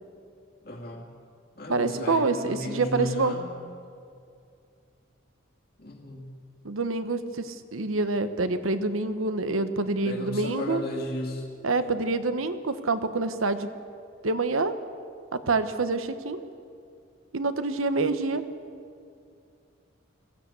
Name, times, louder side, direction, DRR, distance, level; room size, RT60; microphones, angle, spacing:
voice 1, 0.6-1.1 1.6-3.6 5.8-6.4 10.0-11.5, left 1 dB, 50° left, 0 dB, 2.3 m, -35 dB
voice 2, 1.7-3.4 6.6-10.8 11.6-13.7 14.2-14.7 15.3-16.4 17.3-18.4, right 3 dB, 85° right, 10 dB, 1.1 m, -27 dB
20.5 x 15.5 x 8.2 m, 2.4 s
head